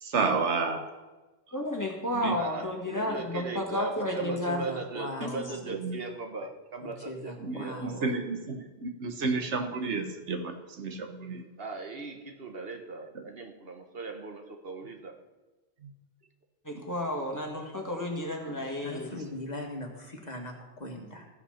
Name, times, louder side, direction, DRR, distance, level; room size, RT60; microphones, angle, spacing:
voice 1, 0.0-0.9 2.1-2.4 5.7-6.0 7.4-11.5 13.1-13.2 15.8-15.9 16.7-16.8 18.5-18.6, right 4 dB, 85° right, 5 dB, 1.4 m, -31 dB
voice 2, 1.5-4.7 5.2-5.3 16.6-19.1, left 1 dB, 15° left, 0 dB, 1.7 m, -32 dB
voice 3, 2.4-8.1 11.6-15.1, right 3 dB, 60° right, 4 dB, 1.2 m, -39 dB
voice 4, 4.2-5.6 6.8-8.2 18.8-21.3, left 1 dB, 40° left, 2 dB, 1.5 m, -40 dB
15.0 x 5.7 x 5.7 m, 1.2 s
omnidirectional pair, 1.2 m